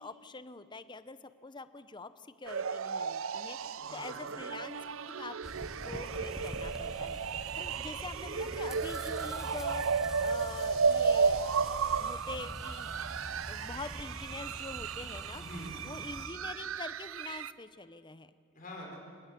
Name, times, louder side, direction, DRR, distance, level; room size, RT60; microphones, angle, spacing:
voice 1, 0.0-4.8 5.1-5.4 5.8-11.6 12.0-12.9 13.5-15.4 15.8-18.3, left 3 dB, 20° left, 13 dB, 0.8 m, -45 dB
sound 1, 2.4-17.5, right 5 dB, 80° right, 0.6 m, -34 dB
voice 2, 3.8-4.3 7.6-8.5 15.4-15.9 18.5-19.0, equal, 40° left, -1 dB, 5.2 m, -47 dB
sound 2, 5.4-16.3, equal, 5° right, 1.0 m, -45 dB
sound 3, 6.0-12.2, right 3 dB, 30° right, 0.6 m, -50 dB
25.5 x 19.5 x 7.6 m, 2.3 s
head